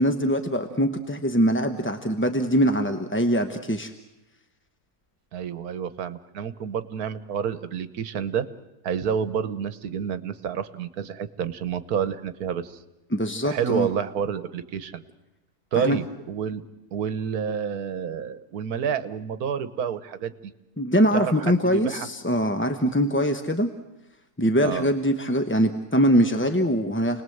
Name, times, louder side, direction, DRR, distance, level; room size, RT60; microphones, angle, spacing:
voice 1, 0.0-3.9 13.1-13.9 15.7-16.0 20.8-23.7 24.4-27.2, equal, 10° left, 7 dB, 0.7 m, -23 dB
voice 2, 5.3-8.5 8.8-12.8 13.4-15.0 15.7-16.6 16.9-20.5 21.1-22.1 24.6-24.9, right 7 dB, 75° right, 13 dB, 1.5 m, -29 dB
29.0 x 19.5 x 7.9 m, 0.97 s
omnidirectional pair, 1.6 m